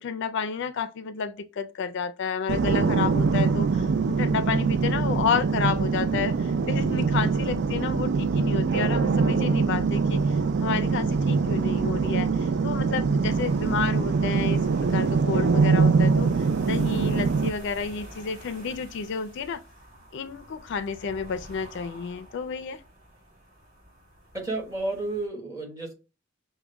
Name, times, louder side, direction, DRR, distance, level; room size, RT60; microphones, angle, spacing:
voice 1, 0.0-14.6 14.9-16.3 16.7-19.6 20.1-22.8, left 6 dB, 60° left, 0.4 m, -31 dB
sound 1, 2.5-17.5, right 4 dB, 60° right, 0.4 m, -23 dB
sound 2, 13.3-25.3, equal, 40° right, 2.3 m, -48 dB
voice 2, 24.3-25.9, right 2 dB, 15° right, 1.5 m, -31 dB
6.1 x 2.1 x 3.4 m
head